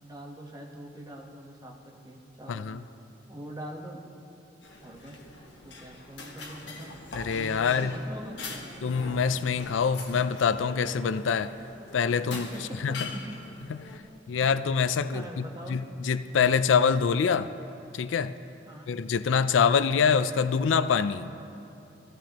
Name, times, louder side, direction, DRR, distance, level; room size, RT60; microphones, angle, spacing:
voice 1, 0.0-2.7 3.3-4.0 4.8-5.2 5.6-6.9 7.3-8.7 12.3-12.6 13.1-13.4 15.1-15.8 18.7-19.0, right 1 dB, 20° right, 0 dB, 1.1 m, -43 dB
voice 2, 2.5-2.8 7.1-8.0 8.8-11.5 11.9-12.5 12.8-13.0 14.3-17.5 17.9-18.3 18.9-21.3, left 6 dB, 85° left, 13 dB, 0.4 m, -25 dB
sound 1, 4.6-14.0, left 3 dB, 70° left, 1.3 m, -43 dB
16.0 x 14.5 x 2.9 m, 2.7 s
head